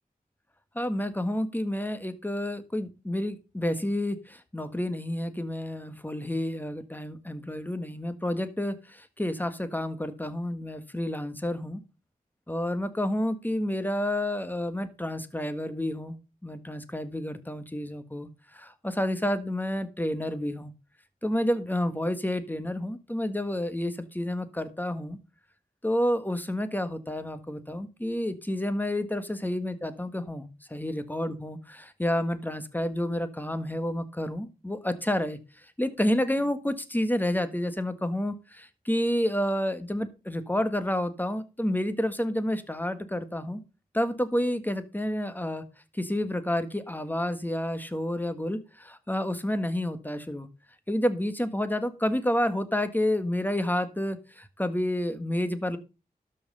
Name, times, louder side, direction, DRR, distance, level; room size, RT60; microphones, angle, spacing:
voice 1, 0.7-11.8 12.5-16.2 16.4-20.7 21.2-25.2 25.8-43.6 43.9-45.6 45.9-50.5 50.9-55.8, left 1 dB, 10° left, 10 dB, 1.6 m, -30 dB
12.5 x 5.7 x 5.4 m, 0.30 s
wide cardioid pair, 75°, 16 cm